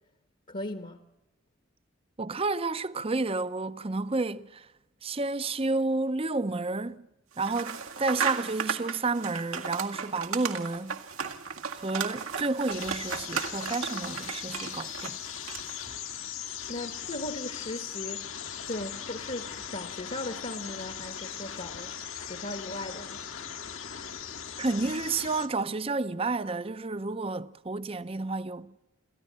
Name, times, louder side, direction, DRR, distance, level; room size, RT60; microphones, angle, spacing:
voice 1, 0.5-1.0 16.7-18.3 18.6-23.2, left 2 dB, 40° left, 1.1 m, -38 dB
voice 2, 2.2-4.7 5.0-7.0 7.4-11.0 11.7-15.2 24.6-28.8, right 3 dB, 25° right, 0.6 m, -30 dB
sound 1, 7.4-15.9, right 6 dB, 90° right, 1.9 m, -35 dB
sound 2, 12.7-25.5, left 9 dB, 75° left, 1.8 m, -39 dB
28.0 x 14.5 x 7.4 m
head